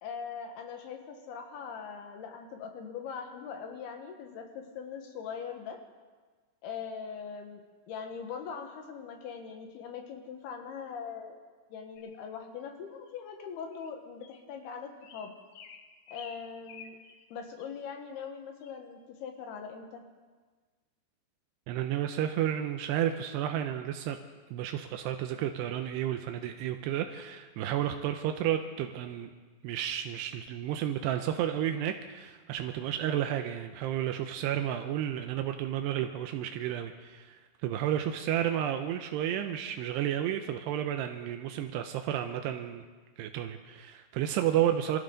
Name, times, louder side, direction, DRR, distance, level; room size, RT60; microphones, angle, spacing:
voice 1, 0.0-5.8 6.6-7.6 7.9-11.4 11.7-15.3 16.1-17.0 17.3-20.1, left 6 dB, 65° left, 4 dB, 3.0 m, -41 dB
sound 1, 12.0-12.2 13.1-13.2 13.7-13.9 14.2-14.4 15.0-17.3 17.6-17.7 18.1-18.3 18.6-18.8, left 6 dB, 80° left, 3.6 m, -51 dB
voice 2, 21.7-24.2 24.5-29.3 29.6-42.8 43.2-45.0, right 11 dB, 90° right, 6 dB, 2.4 m, -31 dB
25.5 x 14.0 x 3.9 m, 1.4 s
omnidirectional pair, 5.5 m